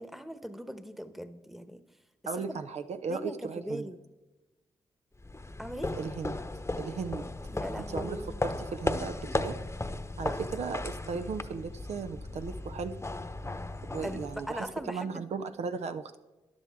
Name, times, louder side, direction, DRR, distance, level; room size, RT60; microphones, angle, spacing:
voice 1, 0.0-1.8 2.5-2.6 3.1-4.0 5.6-6.0 7.5-8.4 10.2-10.7 14.0-15.2, equal, ahead, 11 dB, 1.1 m, -40 dB
voice 2, 2.3-3.9 6.0-6.4 6.8-7.3 7.9-9.6 10.2-13.0 13.9-16.2, right 5 dB, 70° right, 9 dB, 0.6 m, -36 dB
sound 1, 5.2-14.8, left 2 dB, 20° left, 0.9 m, -36 dB
13.5 x 10.5 x 3.6 m, 1.1 s
supercardioid pair, 40°, 12 cm